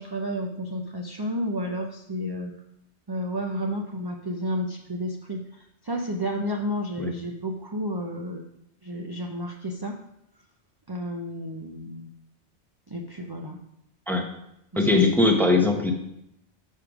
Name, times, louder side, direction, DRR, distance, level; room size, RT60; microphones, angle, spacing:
voice 1, 0.0-2.5 3.1-8.4 8.8-10.0 10.9-12.1 12.9-13.6 14.7-15.1, equal, 30° right, 1 dB, 0.5 m, -31 dB
voice 2, 14.8-15.9, left 3 dB, ahead, 2 dB, 0.8 m, -20 dB
6.5 x 4.9 x 6.1 m, 0.80 s
omnidirectional pair, 1.1 m